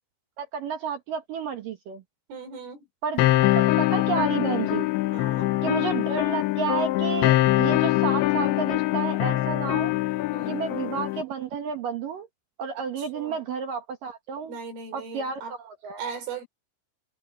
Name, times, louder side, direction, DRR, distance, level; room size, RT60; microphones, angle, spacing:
voice 1, 0.4-2.0 3.0-3.3 3.6-4.9 5.6-9.9 10.5-12.3 12.6-14.6 14.9-16.0, right 6 dB, 65° right, 2.4 m, -31 dB
voice 2, 2.3-2.9 5.1-5.5 10.3-10.6 13.0-13.5 14.5-15.5 16.0-16.5, right 5 dB, 80° right, 7.3 m, -38 dB
sound 1, 3.2-11.2, left 17 dB, 80° left, 3.1 m, -23 dB
omnidirectional pair, 5.7 m